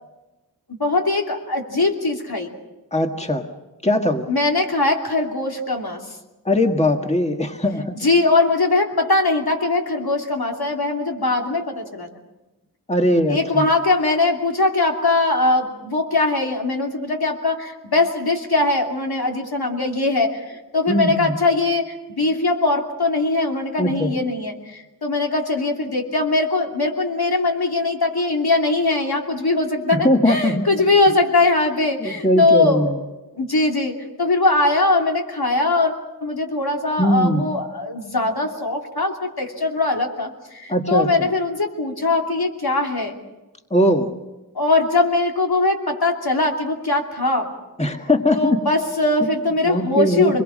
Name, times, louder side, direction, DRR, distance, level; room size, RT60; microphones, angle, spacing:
voice 1, 0.7-2.5 4.3-6.0 8.0-12.1 13.3-32.9 33.4-43.2 44.5-47.5 48.3-50.4, left 2 dB, 75° left, 1 dB, 2.9 m, -21 dB
voice 2, 2.9-3.5 3.8-4.3 6.5-8.0 12.9-13.6 20.9-21.4 23.8-24.1 29.9-30.7 32.0-33.0 37.0-37.5 40.7-41.3 43.7-44.1 47.8-48.6 49.2-49.3 49.7-50.4, left 1 dB, 15° left, 4 dB, 1.7 m, -20 dB
26.0 x 21.5 x 6.4 m, 1.1 s
wide cardioid pair, 50°, 38 cm